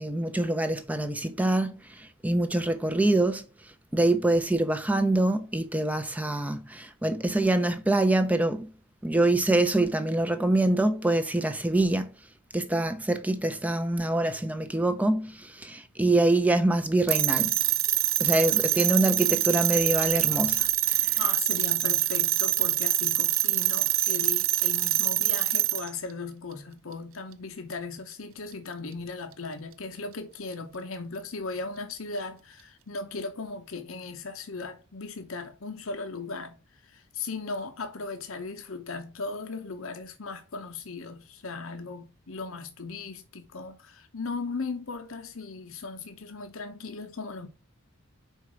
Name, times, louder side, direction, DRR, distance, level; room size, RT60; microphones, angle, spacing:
voice 1, 0.0-3.5 3.9-8.7 9.0-12.1 12.5-17.5 18.2-21.2, right 2 dB, 5° right, 0.5 m, -25 dB
sound 1, 17.1-25.9, right 14 dB, 70° right, 0.6 m, -25 dB
voice 2, 21.2-47.5, left 3 dB, 75° left, 0.9 m, -37 dB
4.8 x 4.5 x 6.0 m
head